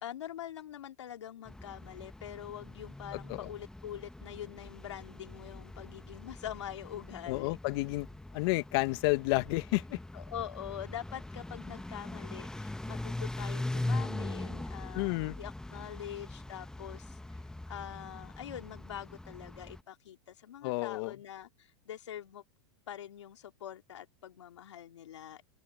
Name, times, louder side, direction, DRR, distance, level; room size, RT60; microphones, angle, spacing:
voice 1, 0.0-7.6 10.1-17.4 17.7-22.4 22.9-25.4, left 10 dB, 85° left, 2.5 m, -44 dB
sound 1, 1.5-19.8, left 2 dB, 5° left, 1.1 m, -41 dB
voice 2, 7.3-8.1 8.3-10.0 14.9-15.4 20.6-21.1, left 24 dB, 60° left, 1.7 m, -30 dB
open air
hypercardioid pair, 115°, 15 cm